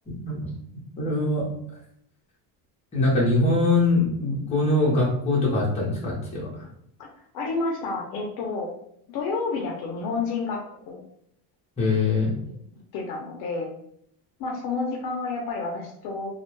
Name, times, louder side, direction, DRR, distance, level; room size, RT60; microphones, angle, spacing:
voice 1, 0.1-0.4 1.0-1.5 2.9-6.5 11.8-12.3, left 2 dB, 15° left, -5 dB, 0.7 m, -22 dB
voice 2, 7.3-8.7 9.1-11.0 12.4-13.7 14.4-16.3, left 4 dB, 60° left, 0 dB, 0.6 m, -30 dB
2.3 x 2.1 x 3.0 m, 0.70 s
cardioid pair, 170°, 43 cm